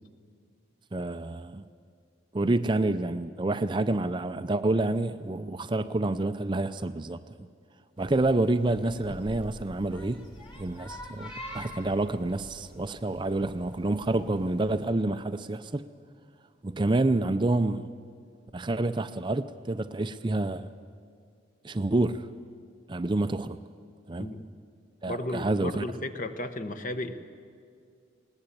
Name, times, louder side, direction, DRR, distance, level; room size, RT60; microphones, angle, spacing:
voice 1, 0.9-1.6 2.3-7.2 8.0-10.3 10.6-15.8 16.6-17.9 18.5-20.7 21.6-22.3 22.9-23.6 24.1-24.3 25.0-25.8, right 2 dB, 25° right, 0.4 m, -28 dB
sound 1, 8.0-14.9, equal, 25° left, 2.5 m, -46 dB
voice 2, 25.1-27.1, left 1 dB, 40° left, 1.1 m, -34 dB
20.5 x 18.5 x 8.4 m
head